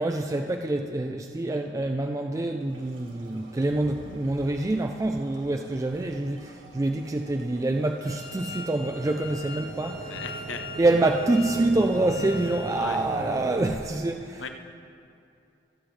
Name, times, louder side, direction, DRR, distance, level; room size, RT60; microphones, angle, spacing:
voice 1, 0.0-10.2 10.8-14.5, right 2 dB, 15° right, 4 dB, 0.3 m, -26 dB
sound 1, 2.7-11.1, right 2 dB, 85° right, 1.7 m, -51 dB
sound 2, 7.5-13.6, right 2 dB, 65° right, 0.8 m, -39 dB
Wind instrument woodwind instrument, 8.0-12.9, left 3 dB, 30° left, 1.2 m, -42 dB
voice 2, 10.1-10.6 12.7-13.0 14.4-14.5, left 4 dB, 85° left, 7 dB, 0.8 m, -36 dB
22.0 x 7.9 x 3.3 m, 2.5 s
head